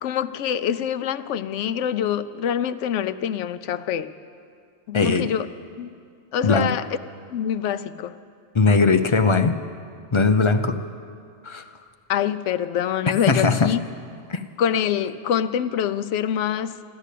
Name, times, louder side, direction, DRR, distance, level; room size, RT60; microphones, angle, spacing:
voice 1, 0.0-4.1 4.9-5.5 5.8-5.9 6.3-6.9 7.3-8.1 12.1-13.8 14.6-16.8, left 9 dB, 85° left, 13 dB, 0.9 m, -25 dB
voice 2, 4.9-5.3 6.4-6.7 8.5-9.5 10.1-10.8 11.4-11.6 13.3-13.7 14.3-14.4, left 4 dB, 35° left, 7 dB, 0.5 m, -19 dB
13.5 x 12.5 x 8.3 m, 2.3 s
omnidirectional pair, 1.2 m